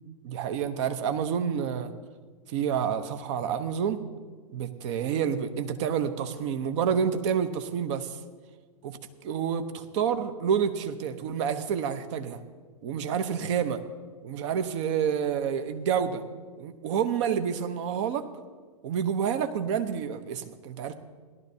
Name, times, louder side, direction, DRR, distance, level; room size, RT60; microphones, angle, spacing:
voice 1, 0.2-1.9 2.5-4.0 4.5-8.2 8.8-12.4 12.8-13.8 14.2-16.2 16.6-18.3 18.8-20.9, right 7 dB, 50° right, 9 dB, 0.9 m, -28 dB
17.5 x 12.0 x 2.8 m, 1.5 s
figure-of-eight pair, 100°, 19 cm